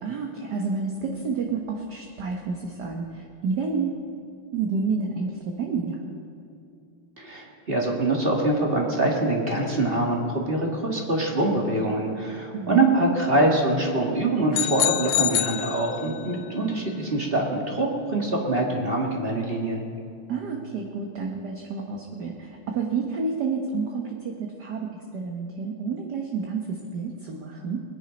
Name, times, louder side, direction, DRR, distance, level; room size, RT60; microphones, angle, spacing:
voice 1, 0.0-4.0 4.5-6.0 12.5-12.9 20.3-27.8, right 4 dB, 55° right, 1 dB, 1.5 m, -30 dB
voice 2, 7.2-19.8, right 2 dB, 25° right, -1 dB, 2.0 m, -24 dB
sound 1, 14.5-16.4, left 13 dB, 75° left, 1.3 m, -26 dB
21.5 x 10.0 x 5.2 m, 2.6 s
omnidirectional pair, 2.4 m